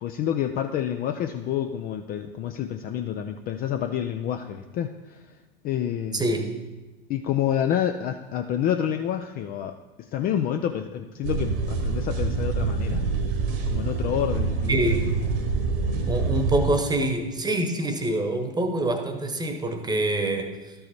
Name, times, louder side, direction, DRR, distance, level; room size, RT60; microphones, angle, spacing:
voice 1, 0.0-5.2 5.6-6.2 7.1-9.8 10.1-13.0 13.7-14.8, left 10 dB, 30° left, 6 dB, 0.4 m, -28 dB
voice 2, 6.1-6.5 14.7-15.1 16.1-20.7, right 2 dB, 15° right, 6 dB, 1.1 m, -25 dB
sound 1, 11.2-16.7, right 4 dB, 65° right, 1.6 m, -26 dB
12.5 x 5.5 x 4.3 m, 1.1 s
figure-of-eight pair, 80°, 30 cm